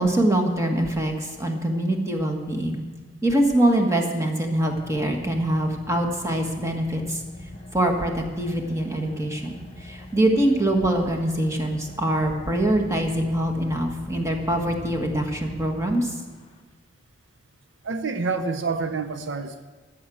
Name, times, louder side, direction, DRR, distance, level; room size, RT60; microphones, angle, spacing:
voice 1, 0.0-2.8 3.2-7.2 7.7-16.2, right 1 dB, 15° right, 3 dB, 1.5 m, -24 dB
Car / Idling, 3.9-16.6, left 1 dB, 30° left, 1.0 m, -43 dB
voice 2, 17.8-19.7, right 4 dB, 75° right, 8 dB, 0.7 m, -28 dB
14.0 x 6.6 x 8.5 m, 1.3 s
head